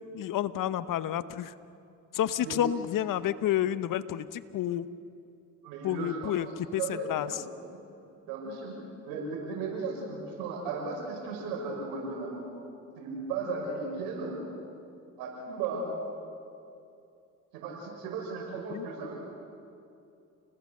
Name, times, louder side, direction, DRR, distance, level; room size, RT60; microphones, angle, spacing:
voice 1, 0.1-1.5 2.1-4.9 5.8-7.4 18.7-18.9, left 11 dB, 60° left, 15 dB, 1.0 m, -30 dB
voice 2, 5.6-7.5 8.3-8.8 9.0-12.5 13.0-14.4 15.2-15.9 17.5-19.2, right 4 dB, 85° right, 0 dB, 6.0 m, -36 dB
29.0 x 20.0 x 6.7 m, 2.6 s
hypercardioid pair, 55°, 36 cm